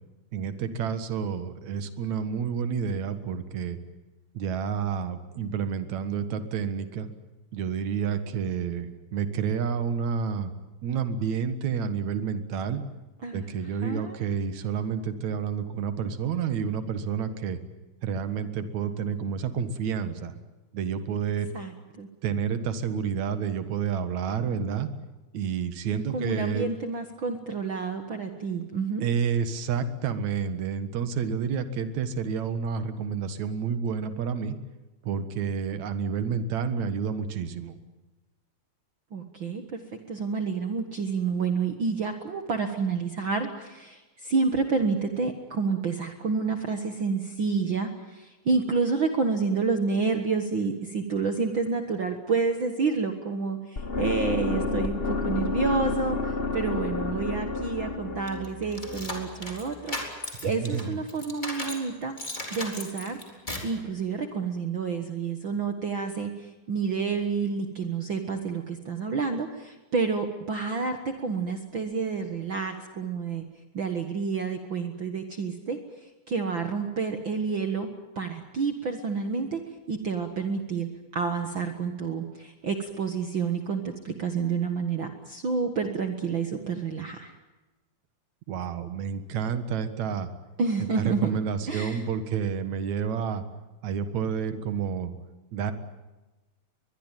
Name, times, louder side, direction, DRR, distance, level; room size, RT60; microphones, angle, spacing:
voice 1, 0.3-3.8 4.3-7.1 7.5-10.5 10.8-12.8 13.3-17.6 18.0-20.3 20.7-21.5 22.2-24.9 25.3-26.7 29.0-34.6 35.0-37.8 60.4-61.0 88.5-90.3 91.0-93.4 93.8-95.2 95.5-95.7, right 6 dB, 70° right, 10 dB, 2.9 m, -29 dB
voice 2, 13.2-13.5 13.8-14.2 21.5-22.1 26.1-29.1 39.1-39.8 40.1-60.0 60.4-62.1 62.5-63.2 63.6-73.4 73.7-77.9 78.2-79.6 79.9-87.3 90.6-91.3 91.7-92.0, right 4 dB, 45° right, 6 dB, 1.9 m, -29 dB
sound 1, 53.8-59.8, left 3 dB, 75° left, 0.5 m, -30 dB
sound 2, 58.3-61.9 62.2-63.8, left 1 dB, 15° left, 3.7 m, -36 dB
22.5 x 22.5 x 9.2 m, 1.1 s
omnidirectional pair, 3.4 m